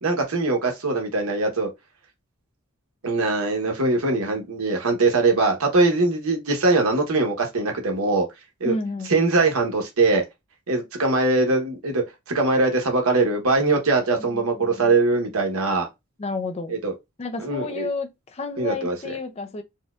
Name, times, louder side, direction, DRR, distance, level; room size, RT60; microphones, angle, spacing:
voice 1, 0.0-1.7 3.0-8.3 8.6-8.7 9.1-10.2 10.7-15.9 16.7-16.9 17.4-17.9 18.6-19.1, right 3 dB, 75° right, 1.0 m, -22 dB
voice 2, 8.6-9.1 14.2-14.9 16.2-16.8 17.2-19.6, left 3 dB, 30° left, 0.4 m, -31 dB
4.2 x 2.2 x 2.3 m
head